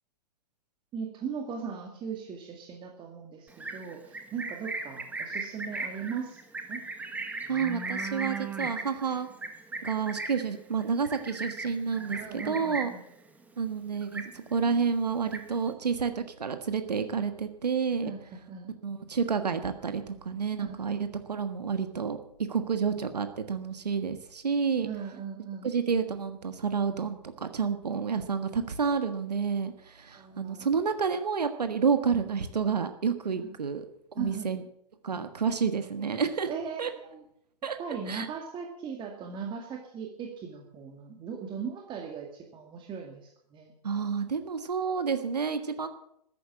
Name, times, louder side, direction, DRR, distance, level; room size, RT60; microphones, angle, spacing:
voice 1, 0.9-6.4 6.7-6.8 12.2-13.0 18.0-18.7 20.6-20.9 24.8-25.7 30.1-30.7 33.4-33.5 34.2-34.5 36.5-37.2 37.8-43.7, right 6 dB, 25° right, 2 dB, 2.1 m, -38 dB
Livestock farm animals working animals, 3.5-13.1 13.4-13.8 14.0-14.7 15.0-15.7, right 3 dB, 5° right, 1.6 m, -37 dB
voice 2, 7.5-9.3 9.8-12.9 13.6-18.1 18.8-22.2 22.5-24.9 25.6-33.8 34.1-34.6 35.0-36.5 36.8-36.9 37.6-37.8 38.1-38.3 43.8-45.9, right 6 dB, 75° right, 9 dB, 1.6 m, -29 dB
14.0 x 10.5 x 7.5 m, 0.73 s
figure-of-eight pair, 110°, 21 cm